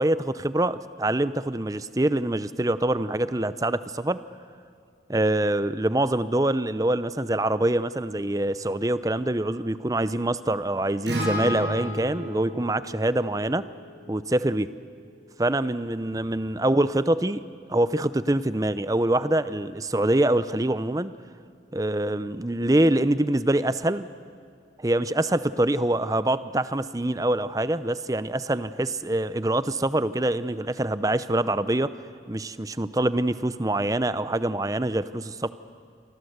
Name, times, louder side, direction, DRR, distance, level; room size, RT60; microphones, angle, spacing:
voice 1, 0.0-4.2 5.1-13.6 14.1-14.7 15.4-17.4 17.7-21.1 21.7-24.1 24.8-31.9 32.3-35.5, right 1 dB, 20° right, 14 dB, 0.7 m, -25 dB
Acoustic guitar, 11.1-15.3, equal, 75° right, 7.4 m, -34 dB
28.0 x 24.0 x 8.1 m, 2.4 s
head